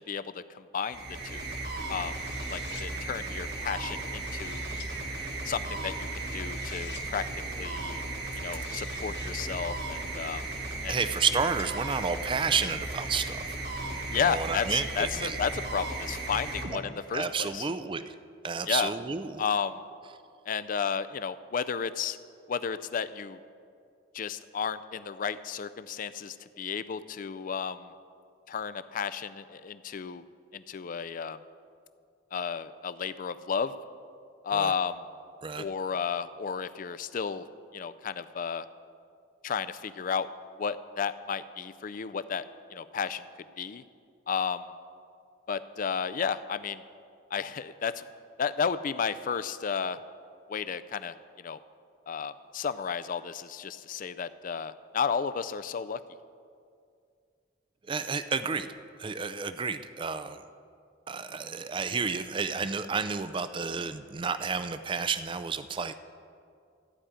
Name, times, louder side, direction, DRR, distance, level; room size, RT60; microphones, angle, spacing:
voice 1, 0.1-1.4 1.9-2.1 2.5-4.6 5.4-7.3 7.6-8.0 8.4-10.4 10.8-11.0 14.1-17.7 18.7-18.9 19.4-19.8 20.5-22.2 22.5-23.4 24.1-27.9 28.5-30.2 30.5-31.4 32.3-33.7 34.4-35.0 35.6-37.5 37.7-38.7 39.4-40.3 40.6-42.4 42.7-43.3 43.6-43.8 44.3-44.7 45.5-46.8 47.3-48.1 48.4-50.0 50.5-51.6 52.1-56.0, left 6 dB, 45° left, 14 dB, 0.4 m, -32 dB
sound 1, 0.8-17.3, right 2 dB, 55° right, 1.4 m, -36 dB
sound 2, 1.9-2.9 3.8-4.9 6.1-7.1 8.2-9.4 10.1-11.7, left 8 dB, 60° left, 0.9 m, -50 dB
voice 2, 10.9-13.5 14.2-15.4 17.1-18.1 18.4-19.4 34.5-34.7 35.4-35.6 57.9-58.7 59.0-60.4 61.1-65.9, right 5 dB, 25° right, 12 dB, 0.4 m, -31 dB
14.0 x 4.9 x 8.8 m, 2.3 s
head